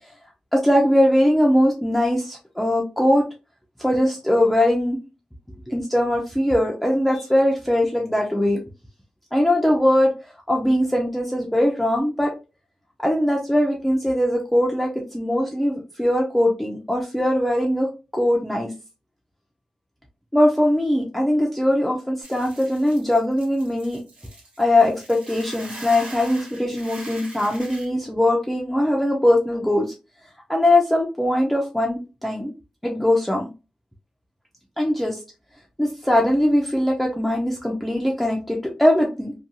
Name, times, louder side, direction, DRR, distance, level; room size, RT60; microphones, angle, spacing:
voice 1, 0.5-3.2 3.8-5.0 5.7-8.6 9.3-10.1 10.5-12.3 13.0-17.9 18.1-18.7 20.3-24.0 24.6-29.9 30.5-32.5 32.8-33.5 34.8-35.2 35.8-39.3, left 1 dB, 5° left, -1 dB, 0.4 m, -21 dB
Hiss / Boiling, 22.2-27.9, right 2 dB, 85° right, 1.1 m, -41 dB
2.5 x 2.2 x 2.7 m, 0.30 s
wide cardioid pair, 160°, 2 cm